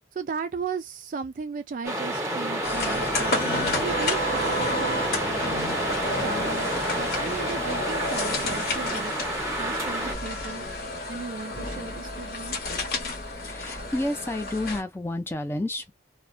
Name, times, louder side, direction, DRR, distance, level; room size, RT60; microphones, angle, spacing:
voice 1, 0.1-5.7 6.2-9.1 9.5-10.7 11.1-12.6, right 5 dB, 50° right, 0.3 m, -36 dB
sound 1, 1.8-10.1, right 1 dB, 15° right, 0.8 m, -30 dB
sound 2, 2.6-14.8, left 2 dB, 55° left, 0.9 m, -30 dB
voice 2, 13.2-15.9, left 1 dB, 15° left, 0.5 m, -30 dB
2.4 x 2.1 x 2.5 m
head